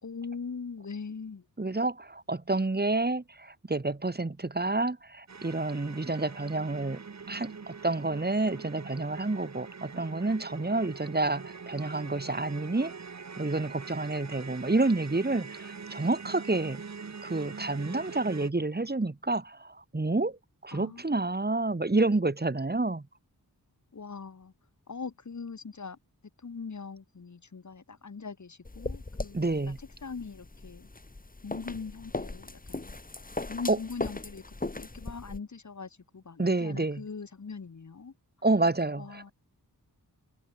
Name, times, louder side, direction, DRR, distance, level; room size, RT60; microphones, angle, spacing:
voice 1, 0.0-1.4 20.7-21.0 23.9-24.5 24.9-26.0 26.4-29.5 30.0-30.9 31.4-33.0 33.5-38.1 39.0-39.3, left 5 dB, 50° left, 1.8 m, -41 dB
voice 2, 1.6-7.0 7.3-12.9 13.4-16.8 17.2-23.0 29.3-29.8 33.7-33.8 36.4-37.0 38.4-39.3, right 2 dB, 25° right, 2.1 m, -29 dB
sound 1, 5.3-18.5, right 5 dB, 45° right, 1.4 m, -44 dB
sound 2, 28.7-35.4, left 2 dB, 20° left, 2.0 m, -39 dB
wide cardioid pair, 85°, 38 cm